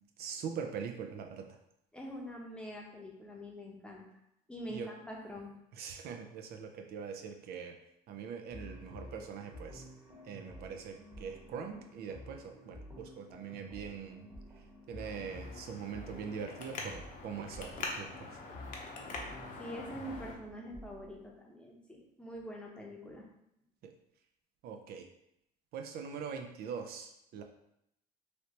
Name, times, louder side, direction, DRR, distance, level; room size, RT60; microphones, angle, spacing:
voice 1, 0.2-1.6 4.7-4.9 5.7-7.7 8.1-9.9 10.2-14.3 14.9-18.4 23.8-23.9 24.6-25.1 25.7-27.4, right 6 dB, 70° right, 4 dB, 0.4 m, -42 dB
voice 2, 1.9-4.0 4.5-5.6 19.6-23.3, equal, 5° left, -2 dB, 0.7 m, -45 dB
sound 1, 8.5-21.3, left 1 dB, 25° right, 1.1 m, -51 dB
Traffic noise roadway noise, 15.0-20.3, left 3 dB, 50° left, 0.7 m, -44 dB
3.2 x 2.8 x 2.9 m, 0.79 s
cardioid pair, 110°, 17 cm